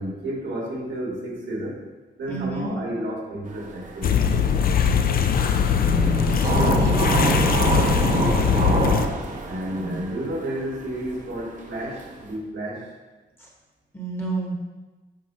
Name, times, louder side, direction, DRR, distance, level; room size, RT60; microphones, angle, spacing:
voice 1, 0.0-1.9 2.2-4.3 8.2-9.0 9.4-12.9, right 1 dB, 75° right, -2 dB, 1.8 m, -31 dB
voice 2, 2.3-2.8 5.8-8.1 9.7-10.0 13.4-13.5 13.9-14.6, right 2 dB, 10° left, -2 dB, 1.2 m, -30 dB
sound 1, 3.5-12.3, right 3 dB, 45° right, 0.8 m, -27 dB
sound 2, 4.0-9.1, left 7 dB, 50° left, 0.4 m, -21 dB
8.4 x 5.1 x 2.8 m, 1.2 s
wide cardioid pair, 165°, 19 cm